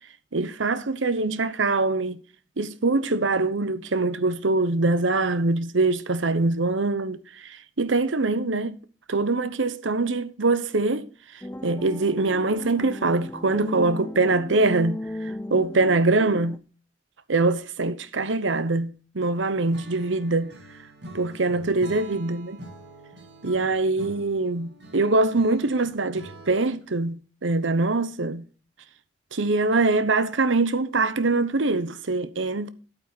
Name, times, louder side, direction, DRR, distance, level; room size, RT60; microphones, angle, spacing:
voice 1, 0.3-2.2 2.6-8.8 9.1-11.1 11.6-16.6 17.3-20.5 21.1-22.6 23.4-28.5 29.3-32.7, right 3 dB, 85° right, 1.0 m, -23 dB
sound 1, 11.4-16.6, left 1 dB, 10° left, 0.4 m, -36 dB
Acoustic guitar / Strum, 19.7-26.9, right 1 dB, 60° right, 2.7 m, -45 dB
11.5 x 8.6 x 4.1 m
head